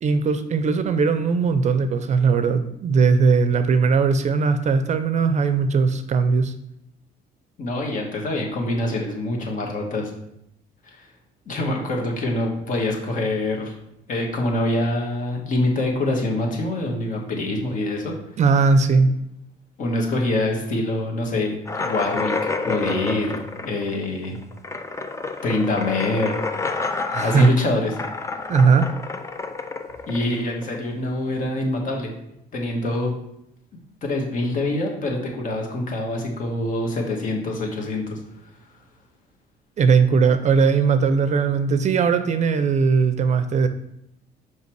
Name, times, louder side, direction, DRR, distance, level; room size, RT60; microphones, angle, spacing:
voice 1, 0.0-6.5 18.4-19.1 27.1-27.5 28.5-28.9 39.8-43.7, right 5 dB, 45° right, 10 dB, 0.6 m, -19 dB
voice 2, 7.6-10.1 10.8-11.1 11.4-13.7 14.1-18.1 19.8-24.4 25.4-26.4 27.2-28.0 30.1-32.1 32.5-33.1 34.0-38.2, left 2 dB, 50° left, 1 dB, 1.7 m, -25 dB
sound 1, 21.7-31.0, left 3 dB, 15° left, 0.6 m, -29 dB
5.6 x 4.9 x 4.6 m, 0.78 s
cardioid pair, 110°, 17 cm